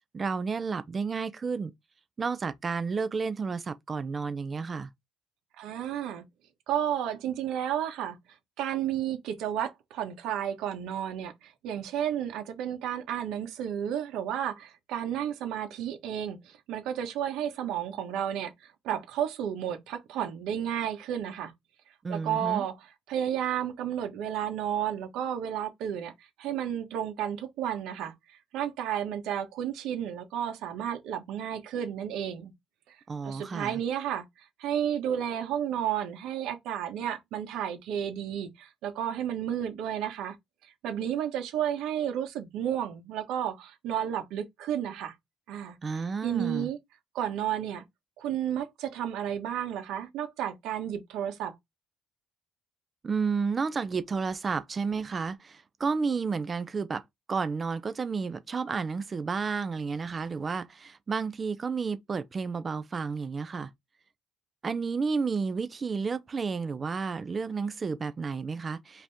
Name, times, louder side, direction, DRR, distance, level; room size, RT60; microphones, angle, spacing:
voice 1, 0.1-1.7 2.2-4.9 22.0-22.6 33.1-33.8 45.8-46.7 53.0-57.0 57.3-63.7 64.6-69.0, right 5 dB, 25° right, 0.5 m, -31 dB
voice 2, 5.6-6.2 6.7-8.2 8.6-21.5 22.1-22.8 23.1-32.5 32.9-33.0 33.2-34.2 34.6-40.4 40.6-45.1 45.5-45.8 46.2-46.8 47.1-47.8 48.2-51.5, right 10 dB, 75° right, 1.3 m, -32 dB
5.0 x 2.9 x 3.5 m
cardioid pair, 135°, 0 cm